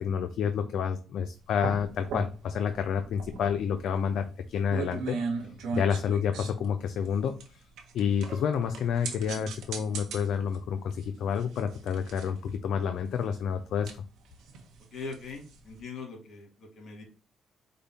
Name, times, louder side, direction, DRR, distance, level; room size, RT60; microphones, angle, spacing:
voice 1, 0.0-5.2 5.7-7.3 7.9-13.9, left 7 dB, 75° left, 7 dB, 0.4 m, -29 dB
sound 1, 1.4-15.8, right 4 dB, 80° right, 1.0 m, -40 dB
voice 2, 14.9-17.0, left 4 dB, 60° left, 2 dB, 2.2 m, -41 dB
5.2 x 2.2 x 4.1 m, 0.36 s
cardioid pair, 90°, 0 cm